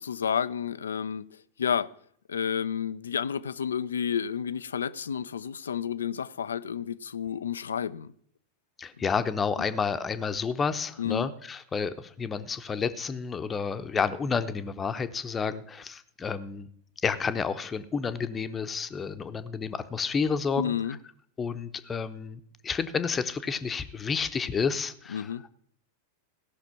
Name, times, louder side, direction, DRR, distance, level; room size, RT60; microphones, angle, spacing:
voice 1, 0.0-1.9 2.3-8.1 11.0-11.3 20.6-21.0 25.1-25.4, left 8 dB, 70° left, 0.4 m, -31 dB
voice 2, 8.8-16.7 17.0-21.0 21.4-25.3, left 5 dB, 20° left, 0.8 m, -30 dB
16.5 x 5.9 x 5.8 m
figure-of-eight pair, 90°, 0 cm